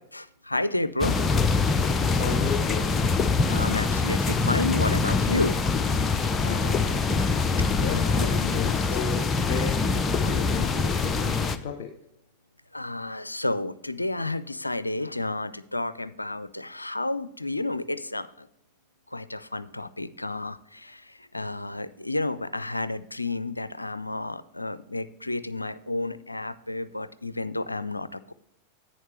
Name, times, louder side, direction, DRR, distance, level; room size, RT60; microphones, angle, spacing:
voice 1, 0.1-1.2 3.5-5.6 12.7-18.5 19.1-28.3, left 2 dB, 85° left, 16 dB, 0.4 m, -31 dB
sound 1, 1.0-11.6, left 4 dB, 20° left, 0.6 m, -24 dB
voice 2, 2.2-2.9 6.4-9.8 10.2-11.9, left 7 dB, 55° left, 7 dB, 0.8 m, -34 dB
10.5 x 8.9 x 3.2 m, 0.79 s
figure-of-eight pair, 90°, 0 cm